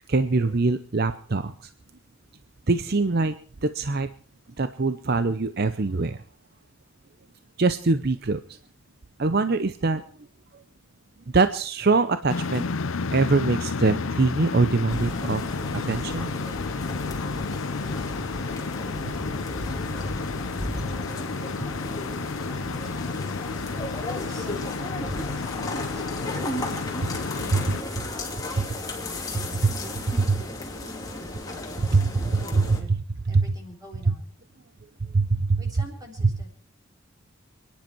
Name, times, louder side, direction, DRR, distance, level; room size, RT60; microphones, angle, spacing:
voice 1, 0.1-1.7 2.7-3.4 3.6-4.1 4.6-6.2 7.6-8.6 9.2-10.0 11.3-12.6 13.1-15.5 15.7-16.3 27.5-27.8 29.3-29.7 30.2-30.4 31.9-33.0 33.3-33.5 35.0-35.6, right 3 dB, 50° right, 11 dB, 0.7 m, -23 dB
sound 1, 12.3-27.8, left 4 dB, 70° left, 0.7 m, -31 dB
sound 2, 14.9-32.8, left 1 dB, 15° left, 2.8 m, -34 dB
voice 2, 19.8-27.3 28.1-33.0 33.3-34.4 35.6-36.5, equal, 15° right, 1 dB, 3.9 m, -47 dB
28.5 x 10.5 x 4.5 m, 0.43 s
head